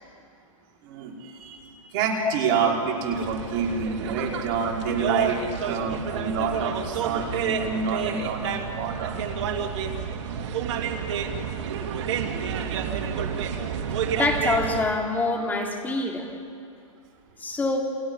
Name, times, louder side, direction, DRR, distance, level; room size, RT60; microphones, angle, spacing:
voice 1, 0.8-9.1, right 5 dB, 40° right, -2 dB, 5.4 m, -28 dB
sound 1, 3.1-14.8, right 7 dB, 60° right, 2.7 m, -29 dB
voice 2, 14.1-16.3 17.4-17.8, left 3 dB, 10° left, 0 dB, 3.4 m, -25 dB
29.0 x 28.0 x 5.7 m, 2.3 s
hypercardioid pair, 145°, 17 cm